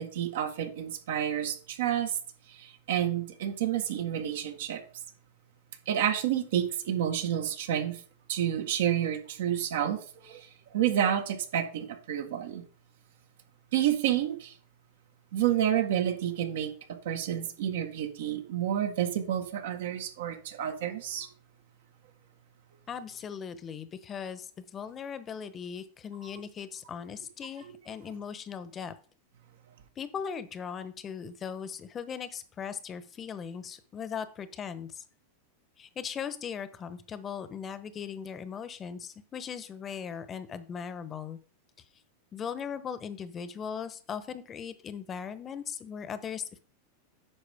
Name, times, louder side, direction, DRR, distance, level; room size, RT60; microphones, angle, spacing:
voice 1, 0.0-2.2 2.5-4.8 5.9-8.0 8.3-12.6 13.7-14.5 15.3-21.3 27.6-27.7, right 10 dB, 75° right, 1.5 m, -29 dB
voice 2, 22.9-28.9 30.0-35.0 35.8-41.4 42.3-46.6, left 7 dB, 30° left, 1.0 m, -39 dB
9.8 x 6.3 x 3.6 m
hypercardioid pair, 110°, 0 cm